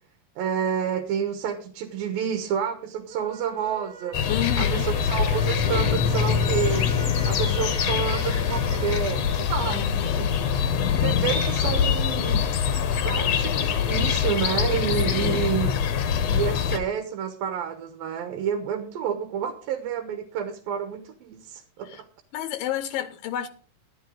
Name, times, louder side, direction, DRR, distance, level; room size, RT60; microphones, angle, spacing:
voice 1, 0.4-4.2 4.6-10.3 11.0-12.5 13.0-15.7 16.3-22.0, right 8 dB, 85° right, 3.0 m, -29 dB
sound 1, 3.1-9.0, right 5 dB, 55° right, 2.3 m, -41 dB
sound 2, 4.1-16.8, left 7 dB, 60° left, 1.8 m, -24 dB
voice 2, 4.3-4.9 9.6-10.3 15.1-15.5 21.9-22.0 22.3-23.5, left 11 dB, 80° left, 2.5 m, -31 dB
14.0 x 11.5 x 4.0 m
omnidirectional pair, 4.1 m